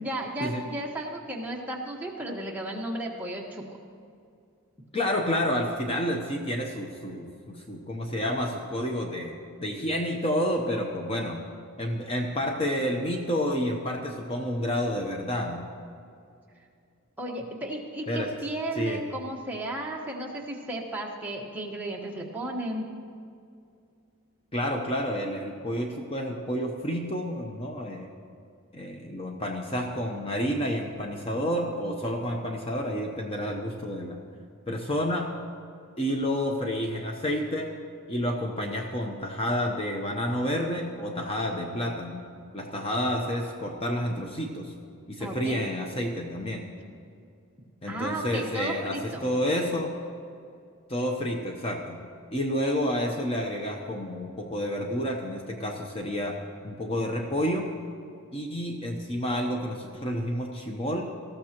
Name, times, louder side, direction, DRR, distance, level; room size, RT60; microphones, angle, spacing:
voice 1, 0.0-3.8 17.2-22.9 45.2-45.6 47.9-49.3, right 1 dB, 5° right, -2 dB, 1.3 m, -34 dB
voice 2, 4.9-11.4 11.8-15.7 18.1-18.3 18.8-19.0 24.5-28.1 28.7-34.2 34.7-35.3 36.0-37.7 38.1-42.2 42.5-44.7 45.1-46.7 47.8-49.9 50.9-52.0 52.3-56.4 56.6-57.7 58.3-61.1, equal, 25° left, 1 dB, 0.8 m, -29 dB
19.0 x 14.0 x 3.0 m, 2.4 s
head